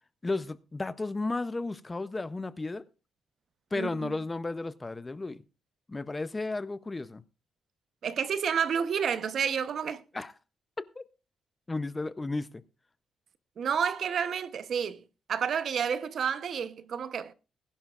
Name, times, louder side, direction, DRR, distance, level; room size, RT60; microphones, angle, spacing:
voice 1, 0.2-2.9 3.7-5.4 5.9-7.2 10.1-10.3 10.8-11.0 11.7-12.6, left 3 dB, 15° left, 0.6 m, -33 dB
voice 2, 3.7-4.1 8.0-10.0 13.6-15.0 15.3-17.3, right 7 dB, 50° right, 0.8 m, -30 dB
20.0 x 11.0 x 2.4 m
cardioid pair, 135°, 0 cm